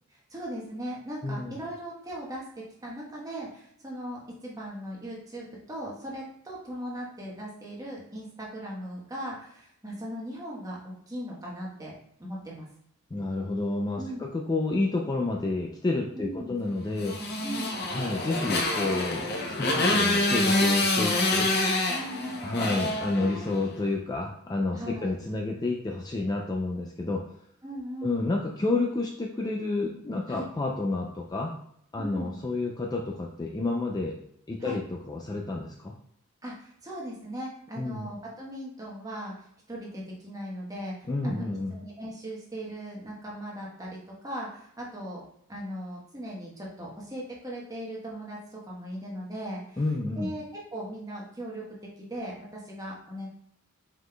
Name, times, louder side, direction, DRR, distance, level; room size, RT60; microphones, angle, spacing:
voice 1, 0.1-2.4 2.8-11.9 12.2-12.7 14.0-14.3 16.2-16.6 17.4-17.9 21.9-22.8 24.7-25.2 27.6-28.2 30.3-30.5 32.0-32.4 34.6-34.8 36.4-41.4 41.7-44.0 44.2-45.2 45.5-49.8 50.2-51.6 52.0-53.3, equal, 15° right, -4 dB, 1.0 m, -38 dB
voice 2, 1.2-1.6 13.1-17.2 17.9-21.5 22.4-27.2 28.0-31.5 31.9-34.2 34.5-35.9 37.8-38.1 41.1-41.8 49.8-50.3, left 2 dB, 20° left, 0 dB, 0.3 m, -30 dB
Motorcycle, 17.0-23.7, left 2 dB, 50° left, 0.6 m, -27 dB
4.9 x 3.9 x 2.2 m, 0.70 s
head